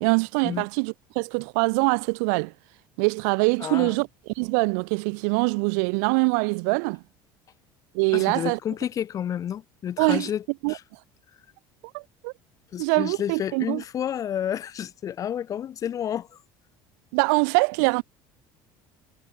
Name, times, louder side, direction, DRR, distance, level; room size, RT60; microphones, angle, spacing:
voice 1, 0.0-2.5 3.0-4.1 4.4-7.0 7.9-8.6 10.0-10.3 10.6-10.7 11.9-12.3 12.8-13.8 17.1-18.0, right 37 dB, 85° right, 1.1 m, -23 dB
voice 2, 3.6-4.0 8.1-10.8 12.7-16.4, left 9 dB, 35° left, 4.1 m, -30 dB
cardioid pair, 135°, 9 cm